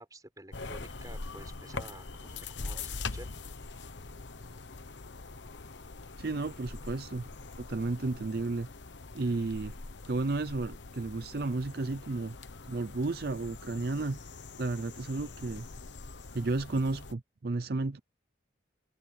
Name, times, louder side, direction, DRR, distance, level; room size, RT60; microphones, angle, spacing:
voice 1, 0.0-3.3, right 1 dB, 20° right, 5.3 m, -50 dB
sound 1, 0.5-17.1, left 3 dB, 80° left, 1.1 m, -43 dB
voice 2, 6.2-8.7 9.1-9.7 10.1-12.4 12.7-14.2 14.6-15.7 16.3-18.0, right 3 dB, 55° right, 0.6 m, -33 dB
head